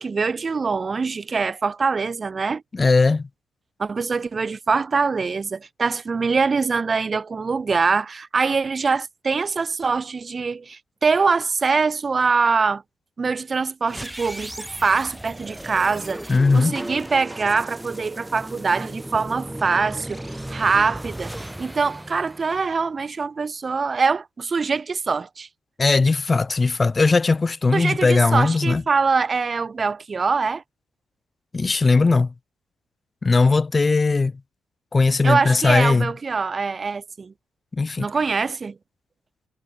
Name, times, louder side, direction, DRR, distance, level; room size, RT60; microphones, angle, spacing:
voice 1, 0.0-2.6 3.8-12.8 13.2-25.5 27.7-30.6 35.2-37.3 38.0-38.7, right 4 dB, 35° right, 1.7 m, -23 dB
voice 2, 2.7-3.3 16.3-16.7 25.8-28.8 31.5-32.3 33.2-34.3 34.9-36.1 37.8-38.1, left 3 dB, 25° left, 1.1 m, -18 dB
sound 1, 13.8-23.1, right 1 dB, 5° right, 6.7 m, -36 dB
cardioid pair, 90°, 0 cm